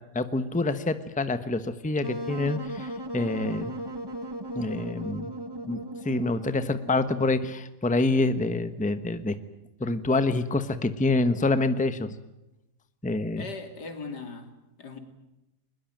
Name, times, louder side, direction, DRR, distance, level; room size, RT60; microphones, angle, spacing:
voice 1, 0.1-3.7 4.5-5.3 5.7-9.3 9.8-12.1 13.0-13.4, left 2 dB, 5° left, 0.9 m, -26 dB
Wind instrument woodwind instrument, 2.0-7.1, right 1 dB, 15° right, 1.2 m, -37 dB
voice 2, 13.4-15.0, left 4 dB, 85° left, 3.4 m, -39 dB
22.0 x 21.0 x 9.1 m
omnidirectional pair, 1.7 m